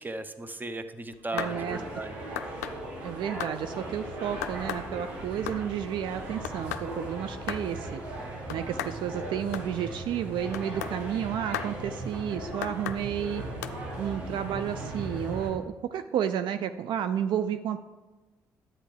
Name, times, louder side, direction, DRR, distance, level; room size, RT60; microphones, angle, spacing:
voice 1, 0.0-2.1, right 2 dB, 20° right, 10 dB, 0.9 m, -36 dB
sound 1, 1.1-1.6 2.4-2.8 3.4-3.6 4.4-4.9 5.2-5.6 6.4-6.9 7.5-7.7 8.5-9.0 9.5-9.7 10.5-11.0 11.5-11.7 12.6-13.0 13.6-13.8, left 11 dB, 90° left, 0.3 m, -35 dB
voice 2, 1.3-1.8 3.0-8.0 8.5-13.4 14.0-17.8, right 9 dB, 65° right, 10 dB, 0.4 m, -31 dB
sound 2, 1.4-15.5, right 2 dB, 85° right, 2.0 m, -38 dB
10.0 x 8.7 x 3.4 m, 1.2 s
hypercardioid pair, 45°, 9 cm